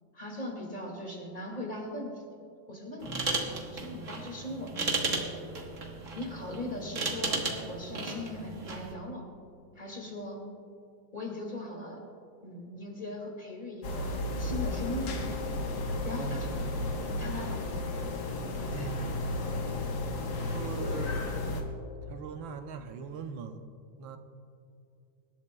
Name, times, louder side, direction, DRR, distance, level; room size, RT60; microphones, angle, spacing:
voice 1, 0.1-2.2 2.7-3.2 3.7-5.2 6.1-9.3 9.8-10.4 11.1-12.0 12.4-14.1 14.4-15.2 16.0-16.6 17.1-17.8 18.6-18.9, left 1 dB, 25° left, -1 dB, 2.2 m, -39 dB
sound 1, 3.0-8.9, right 3 dB, 45° right, 1.6 m, -34 dB
voice 2, 3.0-3.5 16.2-16.5 18.7-19.1 20.3-21.2 22.1-23.6 24.0-24.2, right 6 dB, 85° right, 7 dB, 1.5 m, -41 dB
sound 2, 13.8-21.6, left 2 dB, 75° left, 2.0 m, -33 dB
25.5 x 12.0 x 2.3 m, 2.4 s
omnidirectional pair, 2.1 m